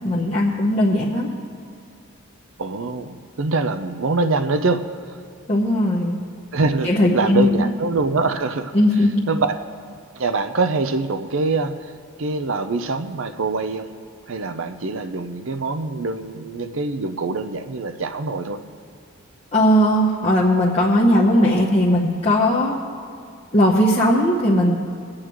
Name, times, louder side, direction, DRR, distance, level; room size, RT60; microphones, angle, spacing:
voice 1, 0.0-1.3 5.5-6.2 6.8-7.7 8.7-9.1 19.5-22.8 23.5-24.8, left 1 dB, 30° left, -6 dB, 0.9 m, -18 dB
voice 2, 2.6-4.8 5.1-5.2 6.5-8.7 9.3-9.5 10.2-11.9 12.2-13.9 14.3-18.6, right 3 dB, 65° right, 9 dB, 0.6 m, -24 dB
21.5 x 8.8 x 3.1 m, 2.4 s
head